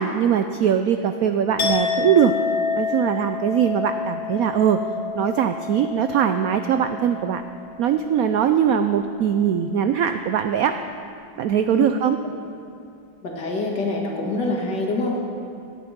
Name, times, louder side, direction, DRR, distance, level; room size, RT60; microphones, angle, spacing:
voice 1, 0.0-2.3 2.8-4.8 5.1-7.4 7.8-10.7 11.4-12.2, right 8 dB, 85° right, 8 dB, 0.7 m, -21 dB
Chink clink, 1.6-7.5 7.8-8.2, left 6 dB, 85° left, 2.6 m, -28 dB
voice 2, 13.2-15.2, left 2 dB, 60° left, -1 dB, 2.5 m, -25 dB
18.0 x 9.9 x 5.2 m, 2.5 s
omnidirectional pair, 2.1 m